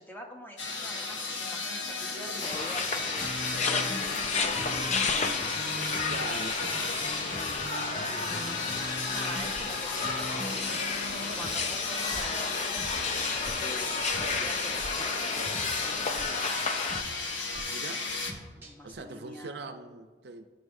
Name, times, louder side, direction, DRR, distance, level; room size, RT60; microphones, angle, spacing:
voice 1, 0.0-5.6 7.2-15.5 15.8-16.3 16.9-17.2 18.5-19.7, equal, 10° left, 1 dB, 0.9 m, -45 dB
sound 1, 0.6-18.3, left 4 dB, 75° left, 1.2 m, -34 dB
sound 2, 2.4-17.0, left 4 dB, 35° left, 0.5 m, -32 dB
sound 3, 2.5-13.5 13.8-14.9 15.2-19.0, equal, 10° right, 1.5 m, -43 dB
voice 2, 6.1-6.9 17.7-18.0 18.8-20.5, right 3 dB, 60° right, 7 dB, 0.6 m, -41 dB
14.5 x 5.6 x 2.6 m, 1.5 s
head